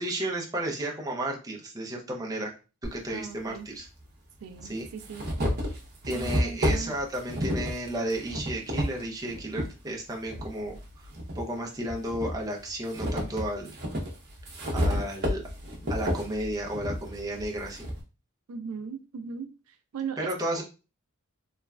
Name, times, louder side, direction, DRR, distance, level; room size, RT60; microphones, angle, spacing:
voice 1, 0.0-2.5 2.9-3.9 4.6-4.9 6.0-11.1 11.3-13.8 14.7-15.4 15.9-17.9 20.2-20.6, right 1 dB, 15° right, 0 dB, 0.5 m, -33 dB
sound 1, 2.8-2.9 4.0-4.1 4.6-9.7 10.2-11.4 11.9-18.0, equal, 50° right, 0.7 m, -31 dB
voice 2, 3.1-3.7 4.4-5.3 6.1-6.9 18.5-20.6, right 6 dB, 75° right, 8 dB, 0.3 m, -38 dB
3.0 x 2.2 x 2.3 m, 0.32 s
head